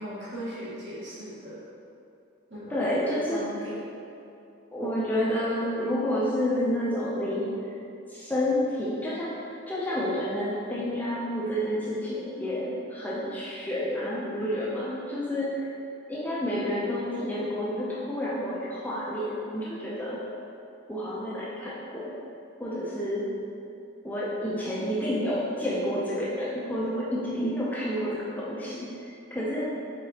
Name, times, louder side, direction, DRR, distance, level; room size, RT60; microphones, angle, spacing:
voice 1, 0.0-1.6 2.5-2.8 3.3-3.8, equal, 60° right, -8 dB, 1.3 m, -38 dB
voice 2, 2.7-3.5 4.7-7.5 8.1-15.6 16.1-20.2 20.9-22.1 22.6-23.3 24.0-28.9 29.3-29.7, equal, 10° left, -7 dB, 0.5 m, -29 dB
4.7 x 3.9 x 2.8 m, 2.6 s
head